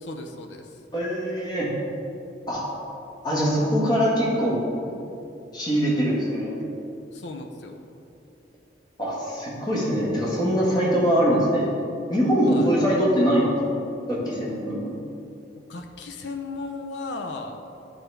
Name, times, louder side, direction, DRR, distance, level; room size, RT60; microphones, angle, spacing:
voice 1, 0.0-0.7 7.1-7.8 12.5-12.7 15.7-17.6, left 3 dB, 75° left, 4 dB, 0.5 m, -35 dB
voice 2, 0.9-1.7 2.5-2.7 3.2-4.6 5.5-6.5 9.0-11.7 12.1-13.5 14.1-14.9, equal, 20° left, -5 dB, 1.4 m, -22 dB
10.0 x 4.7 x 3.3 m, 2.8 s
head